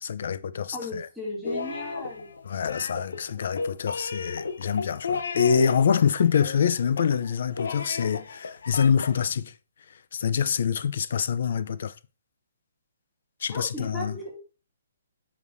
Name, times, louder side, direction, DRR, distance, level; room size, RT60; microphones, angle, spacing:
voice 1, 0.0-1.1 2.5-9.5 10.1-11.9 13.4-14.2, left 7 dB, 55° left, 0.6 m, -25 dB
voice 2, 0.7-2.3 13.5-14.4, left 1 dB, 5° left, 2.5 m, -36 dB
sound 1, 1.4-9.2, left 4 dB, 80° left, 1.0 m, -34 dB
8.1 x 5.1 x 2.7 m
hypercardioid pair, 170°, 0 cm